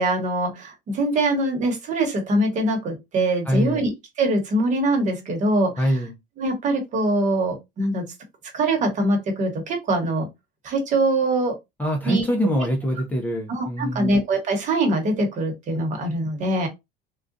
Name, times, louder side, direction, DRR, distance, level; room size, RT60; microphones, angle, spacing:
voice 1, 0.0-3.9 4.2-6.0 6.4-8.0 8.5-10.3 10.6-11.5 12.1-12.3 13.5-16.7, right 1 dB, 35° right, 1.1 m, -23 dB
voice 2, 3.5-3.8 5.8-6.1 11.8-14.2, equal, 10° left, 0.5 m, -24 dB
3.7 x 2.3 x 2.5 m
cardioid pair, 150°, 20 cm